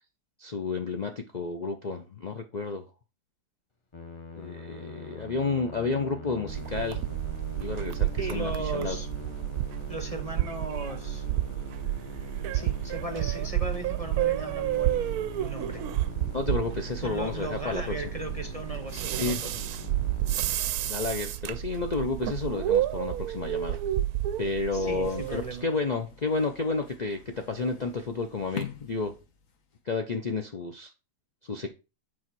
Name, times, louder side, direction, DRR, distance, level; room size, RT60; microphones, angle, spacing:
voice 1, 0.4-2.8 4.4-7.0 7.6-9.0 16.3-17.9 19.1-19.4 20.8-23.8 24.4-29.1 29.9-30.9 31.4-31.7, left 4 dB, 80° left, 4 dB, 0.3 m, -31 dB
Musical instrument, 3.9-21.1, left 3 dB, 25° left, 0.7 m, -43 dB
sound 1, 6.5-25.6, right 13 dB, 70° right, 0.9 m, -31 dB
voice 2, 8.2-9.1 9.9-11.3 12.5-15.0 15.4-15.8 17.0-19.7 24.7-25.7, right 2 dB, 35° right, 6 dB, 0.6 m, -37 dB
sound 2, 25.0-29.8, left 8 dB, 55° left, 1.3 m, -45 dB
8.6 x 3.9 x 4.6 m, 0.29 s
omnidirectional pair, 1.9 m